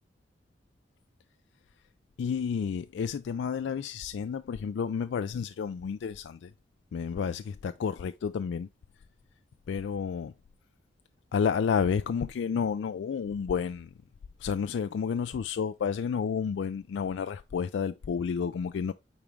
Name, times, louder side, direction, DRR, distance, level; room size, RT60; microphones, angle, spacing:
voice 1, 2.2-6.5 6.9-8.7 9.7-10.3 11.3-13.9 14.4-18.9, left 6 dB, 80° left, 0.3 m, -30 dB
8.7 x 3.5 x 3.1 m
head